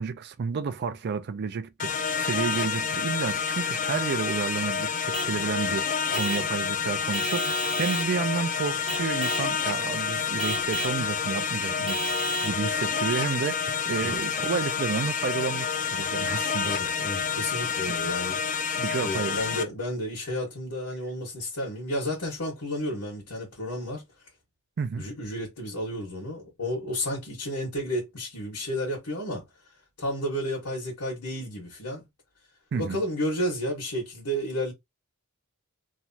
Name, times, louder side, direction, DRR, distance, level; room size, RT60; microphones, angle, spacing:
voice 1, 0.0-16.7 17.9-18.0 18.8-19.4 24.8-25.1 32.7-33.0, right 5 dB, 50° right, 0.4 m, -31 dB
sound 1, 1.8-19.6, left 6 dB, 35° left, 0.3 m, -29 dB
Vehicle horn car horn honking / Truck, 5.1-5.4 6.1-6.5 7.1-8.1 8.9-9.5 10.4-11.0 11.9-12.6, right 2 dB, 25° right, 1.0 m, -32 dB
voice 2, 16.6-18.4 19.0-24.0 25.0-29.4 30.0-32.1 32.7-34.7, equal, 85° left, 1.4 m, -32 dB
3.1 x 2.3 x 2.7 m
head